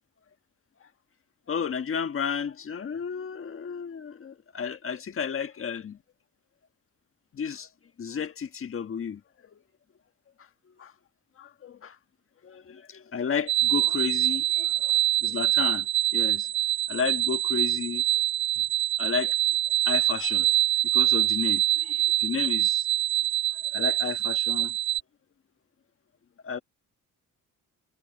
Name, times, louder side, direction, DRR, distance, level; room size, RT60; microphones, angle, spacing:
voice 1, 1.5-6.0 7.3-7.7 8.0-9.2 9.5-9.6 10.4-10.5 10.8-10.9 11.4-12.0 12.4-16.5 16.9-18.0 18.6-18.7 19.0-19.4 19.8-20.6 20.8-22.9 23.5-24.8 26.4-26.6, left 6 dB, 40° left, 1.5 m, -32 dB
sound 1, 13.5-25.0, right 12 dB, 35° right, 0.5 m, -25 dB
cardioid pair, 120°, 34 cm